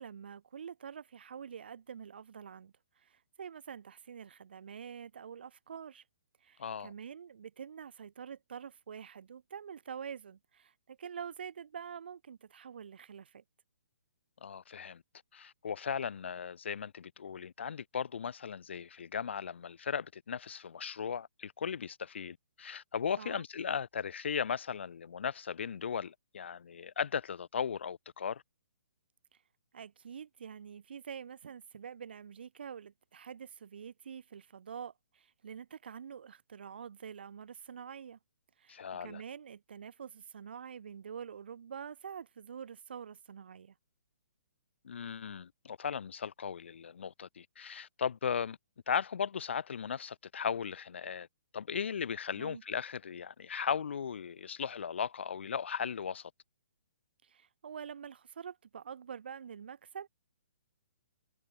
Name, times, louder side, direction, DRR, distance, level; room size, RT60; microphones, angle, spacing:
voice 1, 0.0-6.0 6.4-13.4 23.2-23.4 29.7-38.2 38.6-43.7 52.3-52.6 57.2-60.1, right 7 dB, 55° right, 1.5 m, -46 dB
voice 2, 6.6-6.9 14.4-15.0 15.3-28.4 38.7-39.2 44.8-48.6 48.9-51.3 51.5-56.3, left 7 dB, 65° left, 0.5 m, -37 dB
hypercardioid pair, 175°, 7 cm